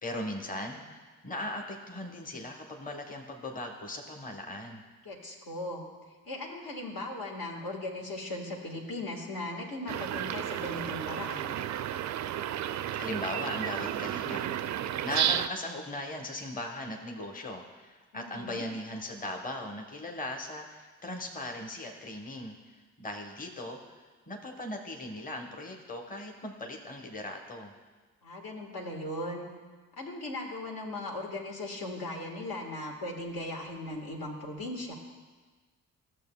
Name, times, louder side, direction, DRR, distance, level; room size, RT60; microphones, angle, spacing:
voice 1, 0.0-4.8 12.9-14.7 15.0-23.8 24.3-27.7, left 1 dB, 20° left, 2 dB, 1.1 m, -38 dB
voice 2, 5.0-5.8 6.2-11.6 18.1-18.6 28.2-29.5 30.0-34.9, left 1 dB, 65° left, -1 dB, 1.6 m, -38 dB
sound 1, 9.9-15.5, right 11 dB, 45° right, 0.4 m, -32 dB
13.5 x 6.8 x 2.3 m, 1.4 s
hypercardioid pair, 45°, 39 cm